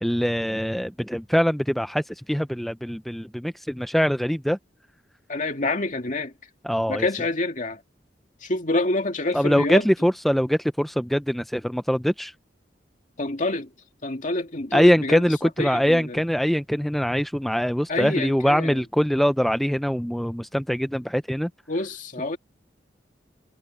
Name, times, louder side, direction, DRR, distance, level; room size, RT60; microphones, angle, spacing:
voice 1, 0.0-4.6 6.6-7.1 9.3-12.3 14.7-21.5, equal, ahead, 0.3 m, -23 dB
voice 2, 5.3-6.3 6.9-7.8 8.4-9.9 13.2-13.7 14.0-15.2 15.6-16.2 17.9-18.8 21.7-22.4, left 2 dB, 45° left, 2.3 m, -27 dB
head